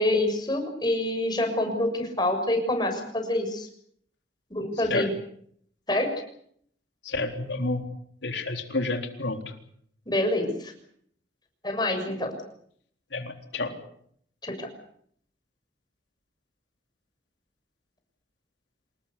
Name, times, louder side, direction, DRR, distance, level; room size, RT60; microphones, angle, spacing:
voice 1, 0.0-3.7 4.5-5.1 5.9-6.1 10.1-10.7 11.6-12.3 14.4-14.7, left 1 dB, 25° left, 5 dB, 6.8 m, -26 dB
voice 2, 7.0-7.8 8.2-9.4 13.1-13.8, left 2 dB, 80° left, 5 dB, 3.8 m, -29 dB
27.5 x 20.0 x 8.4 m, 0.67 s
head